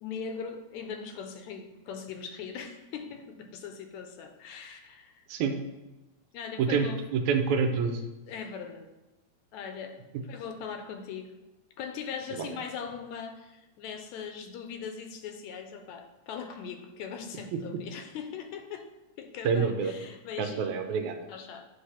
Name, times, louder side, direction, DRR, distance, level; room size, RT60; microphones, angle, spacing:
voice 1, 0.0-5.2 6.3-7.0 8.3-8.9 9.5-10.0 10.2-11.3 11.8-18.9 19.2-20.8 21.3-21.7, left 6 dB, 80° left, 5 dB, 1.9 m, -40 dB
voice 2, 6.6-8.0 12.4-12.5 17.5-17.6 19.4-19.9 20.4-21.2, right 5 dB, 80° right, 5 dB, 2.1 m, -27 dB
8.7 x 3.4 x 5.6 m, 1.0 s
omnidirectional pair, 3.4 m